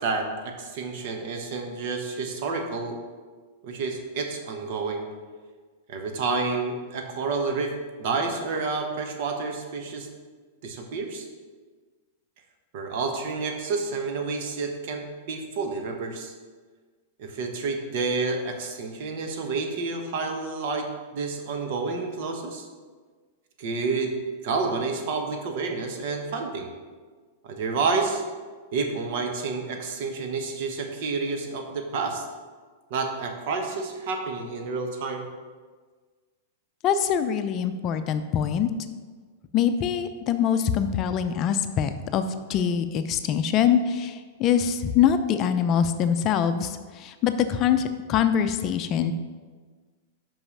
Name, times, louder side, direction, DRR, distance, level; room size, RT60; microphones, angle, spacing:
voice 1, 0.0-3.0 3.6-5.1 5.9-7.7 8.0-10.1 10.6-11.3 12.7-16.3 17.2-22.7 23.6-24.1 24.4-26.7 27.4-28.2 28.7-32.2 32.9-35.3, right 4 dB, 60° right, 4 dB, 1.1 m, -29 dB
voice 2, 36.8-38.7 39.5-49.1, left 8 dB, 40° left, 9 dB, 0.5 m, -24 dB
5.7 x 5.5 x 5.4 m, 1.5 s
hypercardioid pair, 125°, 0 cm